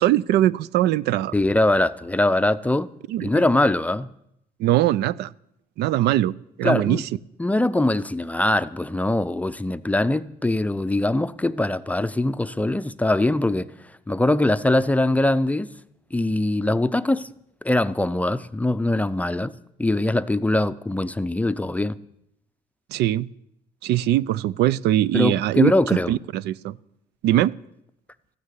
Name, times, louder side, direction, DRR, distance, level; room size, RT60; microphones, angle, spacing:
voice 1, 0.0-1.3 3.1-3.3 4.6-5.3 5.8-7.1 22.9-23.3 23.8-26.8 27.2-27.5, right 13 dB, 75° right, 0.5 m, -21 dB
voice 2, 1.3-2.9 3.2-4.1 6.6-7.0 7.4-13.7 14.1-15.7 16.1-17.3 17.6-19.5 19.8-22.0 25.1-26.1, left 1 dB, 10° left, 0.5 m, -22 dB
14.5 x 9.6 x 8.4 m
cardioid pair, 110°, 17 cm